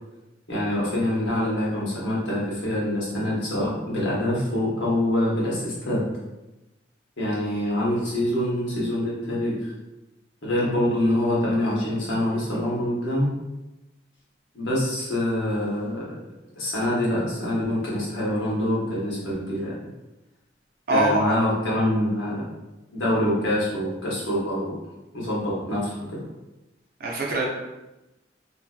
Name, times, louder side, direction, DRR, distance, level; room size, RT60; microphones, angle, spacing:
voice 1, 0.5-6.0 7.2-9.7 10.4-13.3 14.5-16.0 16.6-19.7 20.9-22.4 22.9-24.8 25.1-26.3, left 1 dB, 85° left, -6 dB, 1.0 m, -25 dB
voice 2, 20.9-21.4 27.0-27.5, right 2 dB, 55° right, -2 dB, 0.6 m, -23 dB
2.6 x 2.6 x 2.3 m, 0.99 s
head